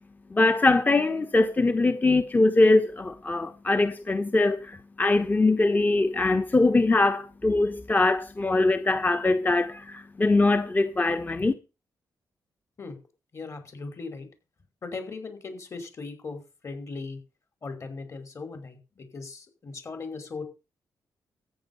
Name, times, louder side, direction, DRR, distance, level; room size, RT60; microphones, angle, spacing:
voice 1, 0.3-11.5, left 2 dB, 25° left, 1.1 m, -22 dB
voice 2, 13.3-14.3 14.8-17.2 17.6-20.4, left 4 dB, 45° left, 5.2 m, -38 dB
14.0 x 9.4 x 5.6 m
cardioid pair, 90°, 7 cm